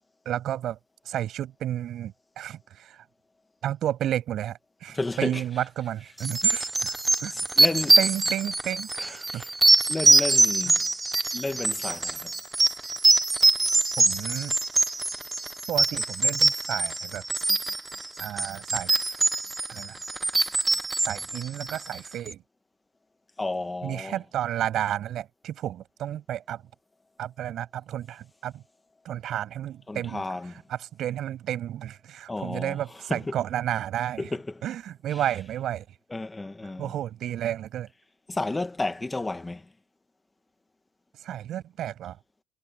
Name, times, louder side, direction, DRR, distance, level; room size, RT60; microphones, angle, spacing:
voice 1, 0.3-0.8 1.1-3.0 3.6-7.4 8.0-9.4 14.0-14.5 15.7-17.2 18.2-19.2 19.7-20.0 21.1-22.4 23.8-26.6 27.2-28.6 29.0-34.3 34.6-35.9 36.8-37.9 41.2-42.2, right 11 dB, 60° right, 6.9 m, -32 dB
voice 2, 4.9-5.4 7.6-8.0 9.0-9.5 9.9-10.8 11.3-12.3 23.4-24.2 29.9-30.5 32.3-32.8 33.1-33.3 34.2-34.6 36.1-36.9 38.3-39.6, left 2 dB, 15° left, 1.5 m, -32 dB
sound 1, 6.2-22.1, right 2 dB, 15° right, 0.8 m, -23 dB
cardioid pair, 135°, 0 cm